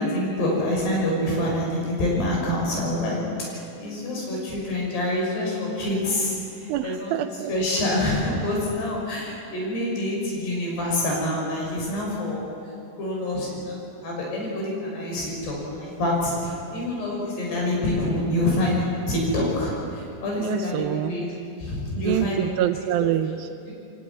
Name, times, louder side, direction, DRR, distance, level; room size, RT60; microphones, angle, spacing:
voice 1, 0.0-3.2 3.5-6.4 6.6-7.1 7.5-12.4 13.0-13.8 14.0-21.3 21.6-22.5 22.8-23.1, left 1 dB, 65° left, -2 dB, 8.1 m, -26 dB
voice 2, 6.7-7.5 20.4-21.1 22.0-23.5, right 13 dB, 85° right, 9 dB, 2.1 m, -26 dB
22.5 x 18.5 x 9.7 m, 2.6 s
omnidirectional pair, 5.0 m